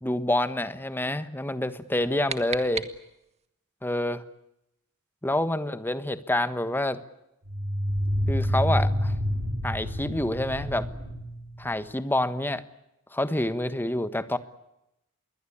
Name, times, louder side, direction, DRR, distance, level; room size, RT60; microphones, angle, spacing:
voice 1, 0.0-2.9 3.8-4.2 5.2-7.0 8.3-9.1 9.6-10.9 11.6-12.6 13.1-14.4, left 1 dB, 10° left, 12 dB, 1.3 m, -27 dB
sound 1, 1.8-3.5, right 5 dB, 30° right, 1.8 m, -37 dB
sound 2, 7.4-12.0, equal, 80° right, 4.1 m, -28 dB
27.5 x 22.5 x 8.7 m, 0.85 s
head